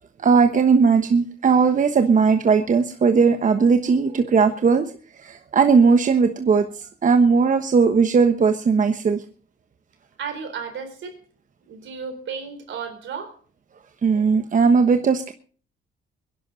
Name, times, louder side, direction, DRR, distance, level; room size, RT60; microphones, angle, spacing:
voice 1, 0.2-4.9 5.2-9.2 14.0-15.3, right 5 dB, 40° right, 7 dB, 1.1 m, -18 dB
voice 2, 10.2-11.2 11.7-13.4, right 6 dB, 70° right, 7 dB, 4.1 m, -33 dB
22.5 x 11.0 x 4.0 m, 0.43 s
cardioid pair, 90°, 20 cm